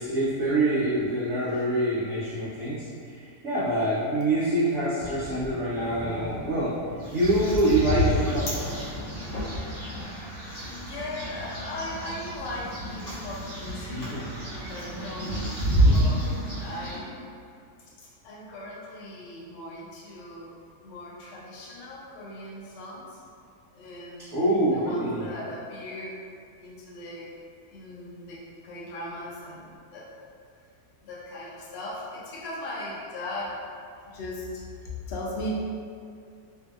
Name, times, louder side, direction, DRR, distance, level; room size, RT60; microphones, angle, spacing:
voice 1, 0.0-6.8 7.1-8.5 13.8-14.3 24.3-25.2, right 1 dB, 65° right, -11 dB, 0.8 m, -25 dB
sound 1, 5.0-10.0, left 1 dB, 25° left, 0.4 m, -39 dB
sound 2, 7.0-17.0, equal, 55° left, 1.1 m, -29 dB
voice 2, 10.6-14.0 14.5-15.4 15.7-17.2 17.5-20.5 20.8-23.2 23.7-26.2 26.6-27.3 27.7-30.1 31.0-33.6 34.1-35.5, left 1 dB, 85° left, -5 dB, 0.5 m, -39 dB
2.7 x 2.6 x 2.3 m, 2.3 s
omnidirectional pair, 1.7 m